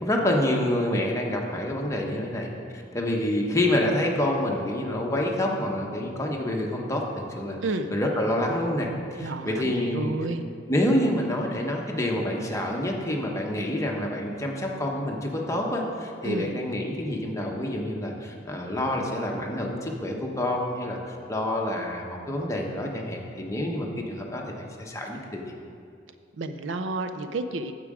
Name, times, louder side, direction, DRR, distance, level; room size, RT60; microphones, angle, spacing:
voice 1, 0.0-7.6 7.9-10.1 10.7-25.4, left 1 dB, 15° left, 0 dB, 1.0 m, -27 dB
voice 2, 9.2-10.5 16.2-16.5 26.4-27.7, right 2 dB, 70° right, 9 dB, 0.5 m, -31 dB
9.2 x 7.5 x 4.9 m, 2.4 s
head